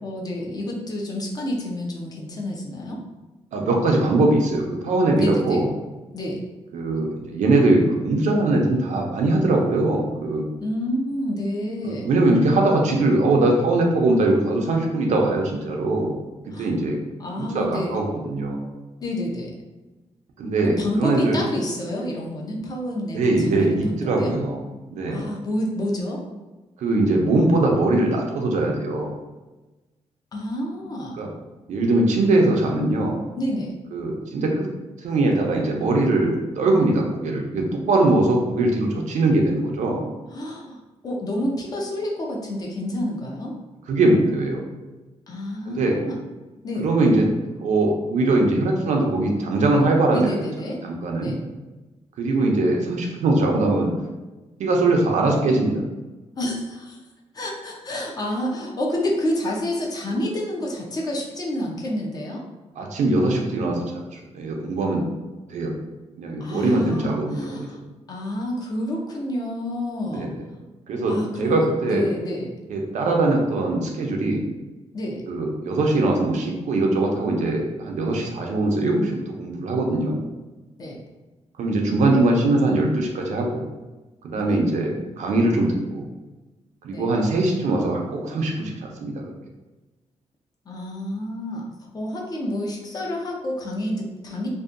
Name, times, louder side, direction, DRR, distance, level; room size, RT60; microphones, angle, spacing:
voice 1, 0.0-3.0 5.2-5.6 6.1-6.4 10.6-12.1 16.5-16.7 17.2-18.1 19.0-19.5 20.6-24.3 25.1-26.2 30.3-31.3 33.4-33.7 40.3-43.5 45.3-46.2 46.6-46.9 50.1-50.8 51.2-51.4 56.4-57.0 57.3-62.4 66.4-67.8 68.1-70.3 71.1-72.6 74.9-75.2 80.8-81.0 84.3-84.6 86.9-87.1 90.7-91.7 91.9-94.5, left 1 dB, 35° left, -2 dB, 0.5 m, -29 dB
voice 2, 3.5-5.7 6.7-10.4 11.8-16.2 16.6-17.0 17.4-18.7 20.4-21.4 23.1-24.6 24.9-25.3 26.8-29.1 31.2-31.3 31.7-33.2 33.9-34.7 35.0-40.0 43.9-44.6 45.7-46.0 46.8-47.3 47.6-50.4 50.8-51.3 52.2-53.9 54.6-55.8 62.8-63.8 64.1-65.0 65.5-65.7 66.2-67.7 70.1-70.3 70.9-72.1 72.7-74.4 75.3-80.2 81.6-83.6 84.2-86.0 86.8-89.3, right 2 dB, 85° right, 1 dB, 0.5 m, -21 dB
2.6 x 2.1 x 2.4 m, 1.1 s
wide cardioid pair, 150°, 12 cm